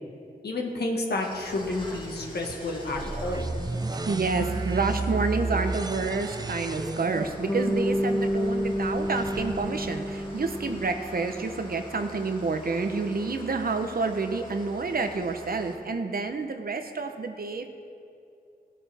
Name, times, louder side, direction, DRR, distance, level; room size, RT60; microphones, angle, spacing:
voice 1, 0.4-3.5, left 2 dB, 80° left, 0 dB, 1.6 m, -30 dB
Engine starting / Idling, 1.1-15.8, left 1 dB, 30° left, 1.9 m, -44 dB
sound 1, 3.0-10.8, right 3 dB, 25° right, 0.4 m, -34 dB
voice 2, 4.1-17.7, right 4 dB, 65° right, 7 dB, 0.8 m, -29 dB
Bass guitar, 7.5-11.8, equal, 15° left, 1.0 m, -29 dB
17.5 x 8.5 x 3.5 m, 2.6 s
wide cardioid pair, 75°, 17 cm